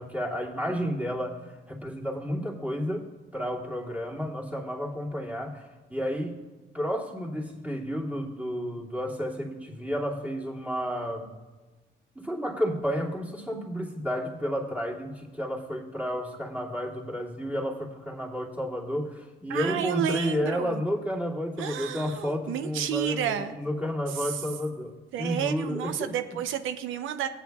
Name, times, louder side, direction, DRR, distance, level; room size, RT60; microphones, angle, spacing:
voice 1, 0.0-3.1 3.3-6.4 6.7-11.3 12.1-26.2, equal, 5° right, -4 dB, 2.3 m, -31 dB
voice 2, 19.5-20.8 21.6-23.6 24.2-24.4 25.1-27.3, right 9 dB, 85° right, 9 dB, 0.6 m, -31 dB
17.0 x 9.0 x 2.3 m, 1.2 s
cardioid pair, 90°, 20 cm